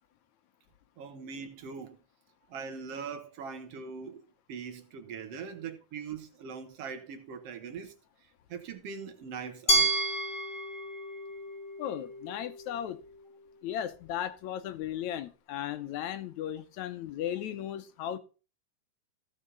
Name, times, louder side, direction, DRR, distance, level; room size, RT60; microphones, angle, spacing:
voice 1, 1.0-2.0 2.5-7.9 8.2-10.0, right 6 dB, 60° right, 2.1 m, -41 dB
Glass, 9.7-12.6, right 2 dB, 45° left, 0.9 m, -30 dB
voice 2, 11.8-13.0 13.6-18.2, left 10 dB, 75° left, 2.1 m, -36 dB
16.5 x 5.6 x 3.9 m
omnidirectional pair, 3.5 m